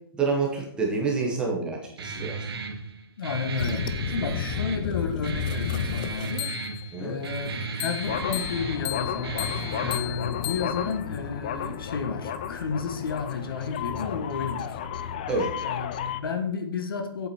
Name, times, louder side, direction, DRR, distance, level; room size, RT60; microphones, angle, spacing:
voice 1, 0.2-2.4 6.9-7.2 15.3-15.5, right 4 dB, 5° right, -1 dB, 1.2 m, -27 dB
Guitar, 2.0-10.0, right 4 dB, 75° right, 2.2 m, -35 dB
voice 2, 3.2-6.5 7.0-14.8 15.6-17.3, left 5 dB, 65° left, 8 dB, 1.8 m, -32 dB
sound 1, 3.6-6.9 7.8-16.2, left 9 dB, 20° left, 0.4 m, -32 dB
8.4 x 8.2 x 4.5 m, 0.72 s
hypercardioid pair, 180°, 13 cm